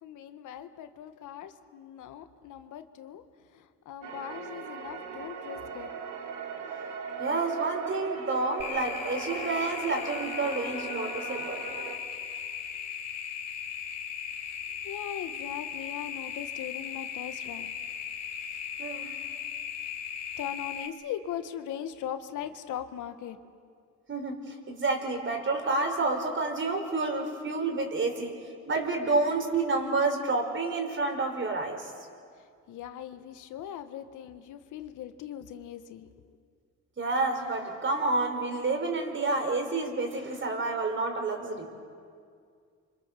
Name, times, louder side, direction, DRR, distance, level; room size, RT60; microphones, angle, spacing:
voice 1, 0.0-3.2 3.5-5.9 14.8-17.7 19.1-19.3 20.4-23.5 32.4-36.4, left 10 dB, 85° left, 9 dB, 1.5 m, -40 dB
sound 1, 4.0-12.0, right 6 dB, 85° right, 2.2 m, -39 dB
voice 2, 7.2-11.6 18.8-19.2 24.1-28.3 28.7-31.9 37.0-41.7, right 3 dB, 40° right, 4 dB, 5.0 m, -29 dB
sound 2, 8.6-20.9, left 7 dB, 60° left, 2.7 m, -37 dB
29.0 x 25.5 x 6.9 m, 2.2 s
cardioid pair, 90°, 30 cm